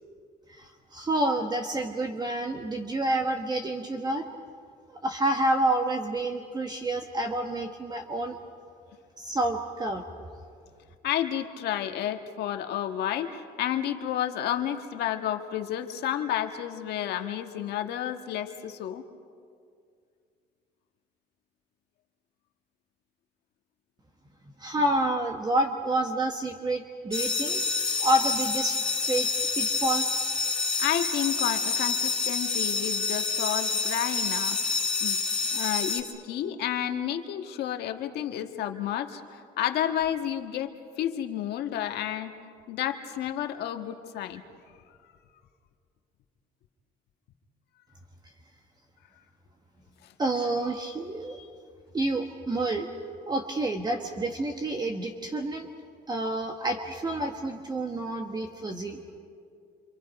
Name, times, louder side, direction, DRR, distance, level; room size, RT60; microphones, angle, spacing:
voice 1, 0.5-4.3 5.0-8.4 9.2-10.0 24.6-27.6 28.0-28.8 29.1-30.1 50.2-51.4 51.9-52.9 53.3-55.7 56.1-59.0, right 1 dB, 25° right, 4 dB, 1.3 m, -28 dB
voice 2, 11.0-19.0 30.8-34.6 35.0-35.2 35.5-40.7 41.0-42.3 42.7-44.4 50.0-50.1, left 10 dB, 75° left, 6 dB, 1.5 m, -31 dB
sound 1, 27.1-36.0, left 4 dB, 5° left, 2.9 m, -28 dB
27.0 x 26.5 x 5.3 m, 2.3 s
cardioid pair, 110°, 17 cm